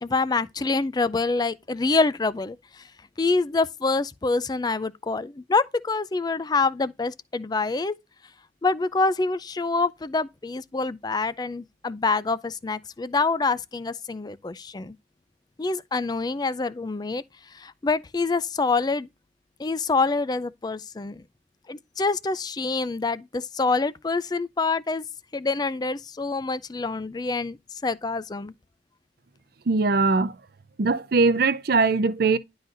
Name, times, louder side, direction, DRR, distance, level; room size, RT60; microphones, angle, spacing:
voice 1, 0.0-2.9 3.2-7.9 8.6-14.9 15.6-19.1 19.6-21.2 21.7-25.0 25.3-28.5, left 3 dB, 20° left, 0.4 m, -26 dB
voice 2, 29.7-30.3 30.8-32.4, right 3 dB, 60° right, 0.6 m, -21 dB
11.5 x 3.9 x 2.5 m
head